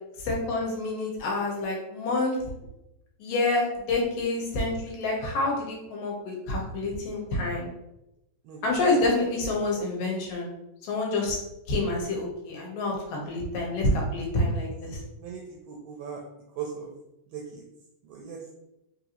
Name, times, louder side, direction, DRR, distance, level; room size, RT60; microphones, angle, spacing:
voice 1, 0.2-2.4 3.2-7.7 8.6-10.5 10.8-11.4 11.7-15.0, left 2 dB, 80° left, -1 dB, 2.6 m, -27 dB
voice 2, 15.2-16.2 16.6-16.9 17.3-17.6 18.1-18.4, right 7 dB, 80° right, -1 dB, 2.1 m, -38 dB
5.3 x 2.7 x 2.9 m, 0.90 s
omnidirectional pair, 3.9 m